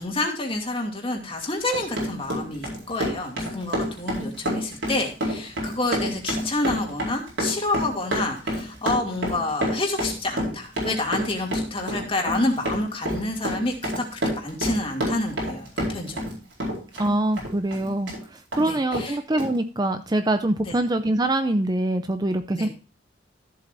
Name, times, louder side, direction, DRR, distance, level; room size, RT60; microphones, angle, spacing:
voice 1, 0.0-16.2 18.6-19.2 20.6-20.8 22.5-22.7, left 2 dB, 30° left, 1 dB, 2.5 m, -28 dB
Run, 1.5-16.3 16.6-18.2 18.5-18.6 18.9-19.1 19.4-19.5, equal, 85° right, 4.7 m, -28 dB
voice 2, 17.0-22.7, right 1 dB, 20° right, 9 dB, 0.6 m, -24 dB
13.5 x 7.8 x 2.6 m, 0.33 s
head